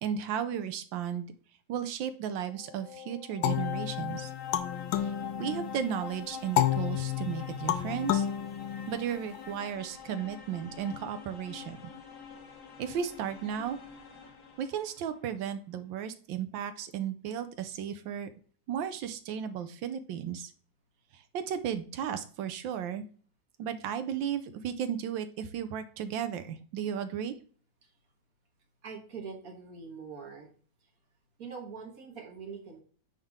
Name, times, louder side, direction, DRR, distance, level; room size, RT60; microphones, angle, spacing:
voice 1, 0.0-1.3 1.7-4.3 4.9-8.3 8.9-11.8 12.8-13.8 14.6-18.3 18.7-20.5 21.1-23.0 23.6-27.3, right 8 dB, 75° right, 10 dB, 1.4 m, -34 dB
sound 1, 2.3-15.1, left 8 dB, 60° left, 1.7 m, -44 dB
sound 2, 3.4-5.9 6.6-9.4, left 11 dB, 90° left, 1.4 m, -31 dB
voice 2, 28.8-30.5 31.4-32.8, right 5 dB, 50° right, 2 dB, 1.7 m, -43 dB
9.2 x 3.7 x 3.5 m, 0.43 s
omnidirectional pair, 2.1 m